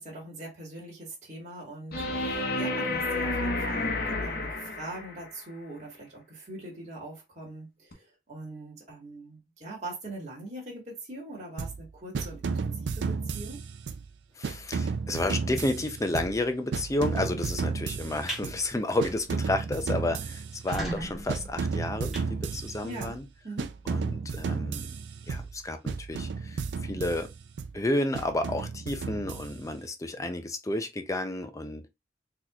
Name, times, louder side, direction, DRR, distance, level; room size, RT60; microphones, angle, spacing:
voice 1, 0.0-13.6 22.8-23.2 23.4-23.7, right 2 dB, 40° right, 1.5 m, -42 dB
sound 1, 1.9-5.3 7.9-8.0, left 2 dB, 60° left, 0.9 m, -30 dB
sound 2, 11.6-11.9 12.1-14.1 14.4-16.5 16.7-18.7 19.0-21.0 21.3-23.2 23.6-25.6 25.9-27.8 28.1-29.8, right 5 dB, 75° right, 0.4 m, -33 dB
voice 2, 14.4-23.2 23.9-24.9 25.3-27.3 27.7-31.9, left 2 dB, 20° left, 0.5 m, -31 dB
sound 3, 18.1-18.4 18.9-19.1 19.5-19.6 19.8-19.9 20.4-23.0, right 1 dB, ahead, 1.3 m, -38 dB
4.0 x 2.9 x 2.3 m
head